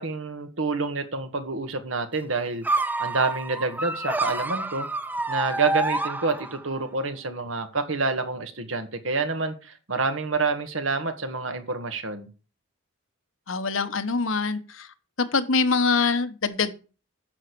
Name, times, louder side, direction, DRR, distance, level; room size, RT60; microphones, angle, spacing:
voice 1, 0.0-2.7 3.0-4.9 5.3-12.3, right 3 dB, 75° right, 1.8 m, -28 dB
sound 1, 2.6-6.8, right 2 dB, 10° right, 0.6 m, -28 dB
voice 2, 13.5-14.9 15.3-16.7, left 4 dB, 75° left, 1.2 m, -24 dB
10.5 x 6.5 x 6.9 m
head